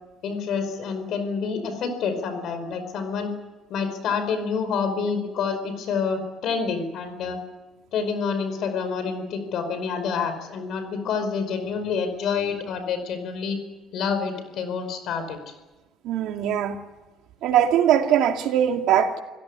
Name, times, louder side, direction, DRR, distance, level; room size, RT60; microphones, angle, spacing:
voice 1, 0.2-3.3 3.7-7.4 7.9-13.6 13.9-15.4, left 5 dB, 55° left, 9 dB, 5.2 m, -28 dB
voice 2, 16.0-16.8 17.4-19.2, right 10 dB, 70° right, 5 dB, 2.2 m, -21 dB
26.0 x 17.0 x 9.8 m, 1.1 s
cardioid pair, 155°, 0 cm